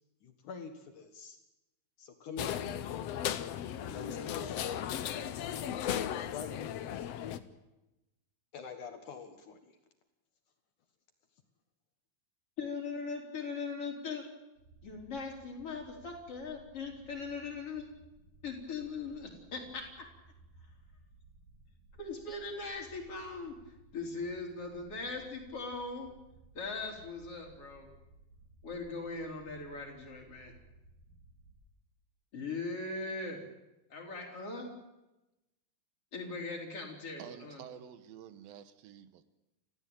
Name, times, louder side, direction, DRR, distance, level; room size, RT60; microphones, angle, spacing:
voice 1, 0.2-1.4 2.0-2.6 3.8-4.9 6.1-6.9 8.5-9.6, left 6 dB, 60° left, 2.8 m, -45 dB
sound 1, 2.4-7.4, left 10 dB, 85° left, 1.4 m, -36 dB
voice 2, 12.6-14.2 14.8-17.9 18.4-20.0 22.0-23.5 23.9-26.1 26.5-27.9 28.6-30.5 32.3-33.4 33.9-34.7 36.1-37.6, left 4 dB, 40° left, 5.1 m, -40 dB
sound 2, 14.6-31.6, right 2 dB, 65° right, 8.9 m, -60 dB
voice 3, 37.2-39.2, right 9 dB, 80° right, 2.8 m, -49 dB
29.5 x 15.0 x 9.0 m
omnidirectional pair, 4.3 m